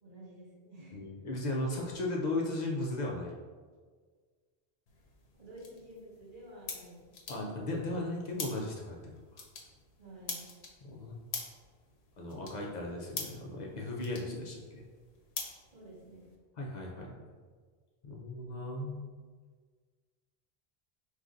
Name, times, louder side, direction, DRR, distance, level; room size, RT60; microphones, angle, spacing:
voice 1, 0.0-1.3 5.4-7.5 10.0-10.5 15.7-16.3, right 1 dB, 50° right, -6 dB, 1.4 m, -51 dB
voice 2, 0.9-3.4 7.3-9.4 10.9-11.2 12.2-14.8 16.6-17.2 18.0-19.1, left 2 dB, 50° left, -1 dB, 0.6 m, -36 dB
sound 1, 4.9-16.4, left 4 dB, 75° left, 0.9 m, -46 dB
5.1 x 3.2 x 2.4 m, 1.5 s
omnidirectional pair, 1.1 m